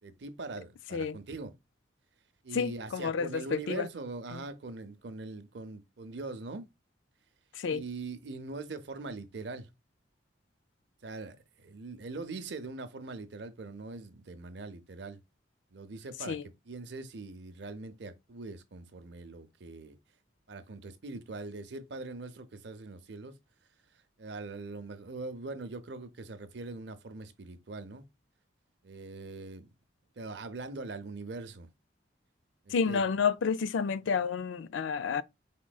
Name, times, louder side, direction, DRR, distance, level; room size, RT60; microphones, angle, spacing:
voice 1, 0.0-1.5 2.4-6.7 7.7-9.7 11.0-15.2 15.7-20.0 20.5-23.3 24.2-28.0 28.8-29.7 30.2-31.7 32.7-33.0, right 3 dB, 70° right, 0.6 m, -42 dB
voice 2, 2.5-3.9 4.3-4.4 7.6-7.8 16.3-16.4 32.7-35.2, left 5 dB, 85° left, 0.4 m, -30 dB
5.1 x 3.6 x 2.3 m
head